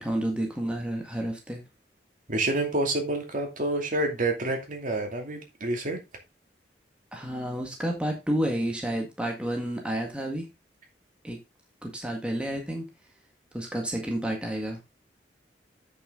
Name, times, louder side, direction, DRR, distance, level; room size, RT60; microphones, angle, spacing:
voice 1, 0.0-1.6 7.1-10.5 11.2-11.4 11.8-12.9 13.5-14.8, right 1 dB, 5° right, 1 dB, 1.8 m, -30 dB
voice 2, 2.3-6.0, right 2 dB, 50° right, 3 dB, 2.5 m, -28 dB
8.2 x 6.9 x 3.7 m, 0.24 s
head